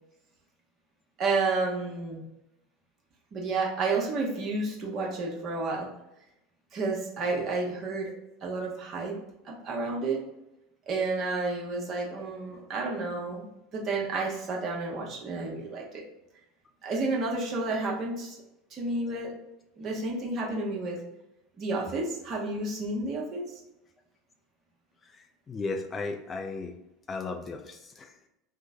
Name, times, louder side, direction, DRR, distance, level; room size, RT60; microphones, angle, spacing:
voice 1, 1.2-2.2 3.3-5.9 6.7-8.1 8.4-9.1 9.4-10.2 10.9-13.4 13.7-16.0 16.8-18.4 18.7-19.3 19.8-21.0 21.6-23.4, right 3 dB, 45° right, -2 dB, 1.0 m, -30 dB
voice 2, 25.5-26.7 27.1-28.3, left 3 dB, 25° left, 3 dB, 0.4 m, -35 dB
3.0 x 2.1 x 3.6 m, 0.88 s
hypercardioid pair, 75°, 0 cm